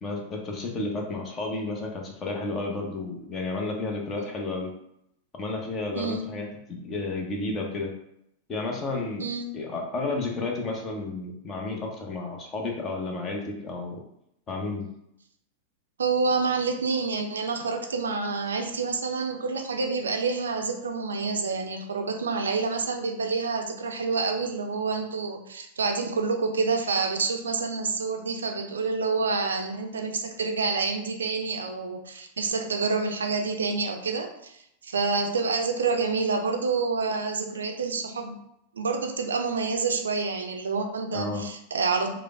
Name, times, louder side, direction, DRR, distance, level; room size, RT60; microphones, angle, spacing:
voice 1, 0.0-4.7 5.4-7.9 8.5-9.2 9.5-14.0 14.5-14.9 41.1-41.5, left 3 dB, 25° left, 1 dB, 0.7 m, -32 dB
voice 2, 16.0-38.4 38.7-42.1, right 4 dB, 70° right, 4 dB, 0.4 m, -28 dB
4.8 x 2.1 x 2.4 m, 0.78 s
figure-of-eight pair, 90°, 0 cm